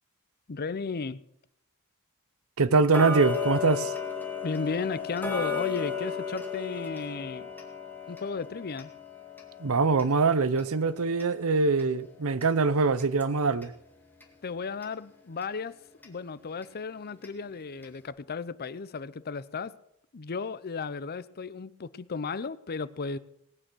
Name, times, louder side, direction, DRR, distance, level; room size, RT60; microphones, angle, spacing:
voice 1, 0.5-1.2 4.4-7.5 8.1-8.9 14.4-15.7 16.0-19.8 20.1-23.2, left 4 dB, 45° left, 0.6 m, -34 dB
voice 2, 2.6-3.9 9.6-13.7, right 4 dB, 70° right, 0.7 m, -23 dB
Tick-tock, 2.9-13.8 14.2-14.3 14.8-14.9 15.4-15.5 16.0-16.1 16.6-16.7 17.2-17.3 17.8-17.9, left 5 dB, 10° left, 2.1 m, -36 dB
19.0 x 9.0 x 6.2 m
head